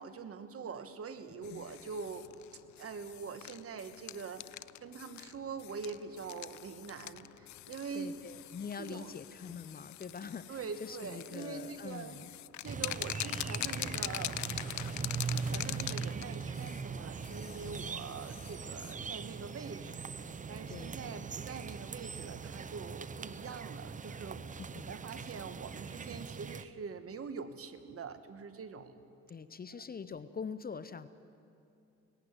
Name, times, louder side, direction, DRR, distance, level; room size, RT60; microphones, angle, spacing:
voice 1, 0.0-2.3 2.8-8.3 8.8-9.1 10.5-12.2 12.6-14.6 14.9-15.0 15.3-20.1 20.5-24.4 24.7-29.0, right 5 dB, 50° right, 11 dB, 1.3 m, -44 dB
voice 2, 1.3-1.6 7.9-12.3 20.7-21.2 24.7-24.9 29.3-31.1, left 6 dB, 30° left, 13 dB, 0.7 m, -44 dB
sound 1, 1.4-18.9, left 16 dB, 70° left, 0.5 m, -44 dB
sound 2, 12.6-26.6, right 5 dB, 25° right, 0.6 m, -41 dB
18.5 x 15.0 x 9.5 m, 2.7 s
cardioid pair, 90°, 30 cm